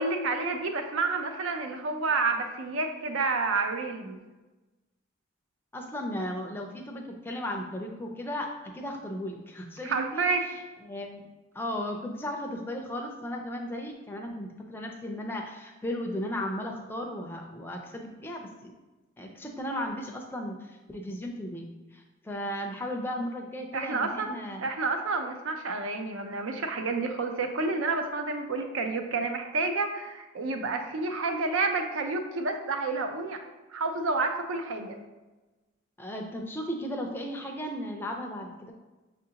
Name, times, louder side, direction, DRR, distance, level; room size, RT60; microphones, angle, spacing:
voice 1, 0.0-4.2 9.8-10.4 23.7-24.3 24.6-33.4 33.7-35.0, right 3 dB, 90° right, 5 dB, 0.5 m, -29 dB
voice 2, 5.7-11.2 11.5-18.7 19.2-24.7 36.0-38.7, equal, 10° left, 2 dB, 0.4 m, -36 dB
6.3 x 2.5 x 2.8 m, 1.1 s
head